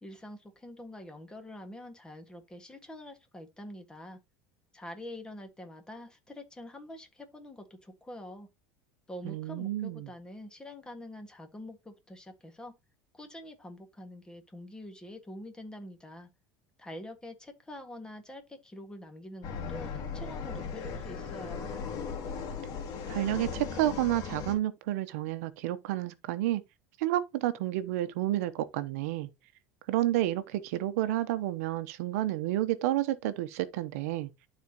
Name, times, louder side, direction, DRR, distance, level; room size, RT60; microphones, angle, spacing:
voice 1, 0.0-4.2 4.7-8.5 9.1-12.7 13.1-16.3 16.8-21.7, left 1 dB, 10° left, 1.8 m, -45 dB
voice 2, 9.2-10.1 23.1-26.6 27.0-29.3 29.9-34.3, right 14 dB, 90° right, 0.9 m, -30 dB
sound 1, 19.4-24.5, left 6 dB, 50° left, 2.5 m, -37 dB
12.0 x 4.3 x 2.9 m
supercardioid pair, 135°, 8 cm